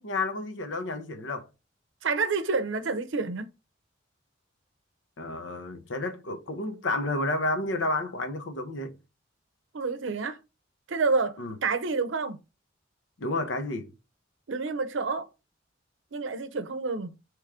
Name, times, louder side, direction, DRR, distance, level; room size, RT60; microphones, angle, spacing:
voice 1, 0.0-1.5 5.2-9.0 11.4-11.5 13.2-13.9, left 2 dB, 70° left, 0.8 m, -31 dB
voice 2, 2.0-3.5 9.7-10.4 10.9-12.4 14.5-15.3 16.1-17.1, right 4 dB, 75° right, 0.6 m, -28 dB
3.5 x 3.0 x 4.8 m
head